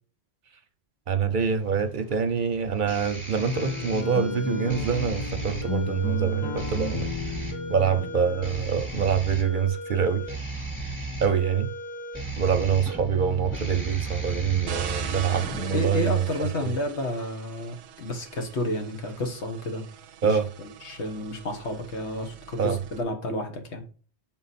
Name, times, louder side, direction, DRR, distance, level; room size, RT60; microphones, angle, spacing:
voice 1, 1.1-7.1 7.7-10.2 11.2-11.7 12.4-16.7 20.2-20.5 22.6-22.8, right 7 dB, 55° right, 0.7 m, -25 dB
sound 1, 1.3-15.8, right 1 dB, 15° left, 2.1 m, -35 dB
sound 2, 3.4-9.3, left 5 dB, 35° left, 0.5 m, -34 dB
sound 3, 14.7-23.0, right 10 dB, 85° right, 0.8 m, -41 dB
voice 2, 15.7-19.9 20.2-23.8, left 1 dB, 90° left, 1.5 m, -31 dB
6.0 x 3.9 x 4.1 m
omnidirectional pair, 1.1 m